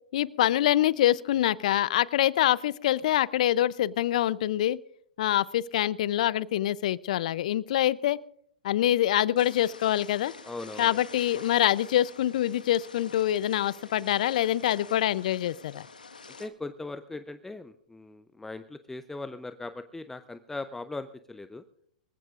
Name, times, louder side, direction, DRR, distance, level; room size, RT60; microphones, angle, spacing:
voice 1, 0.1-4.8 5.2-8.2 8.6-10.3 10.8-15.8, left 12 dB, 60° left, 21 dB, 0.6 m, -25 dB
sound 1, 9.4-16.5, left 4 dB, 85° left, 1.5 m, -47 dB
voice 2, 10.4-11.0 16.4-21.6, left 2 dB, 5° left, 11 dB, 0.6 m, -39 dB
24.5 x 15.0 x 2.5 m, 0.66 s
hypercardioid pair, 105°, 4 cm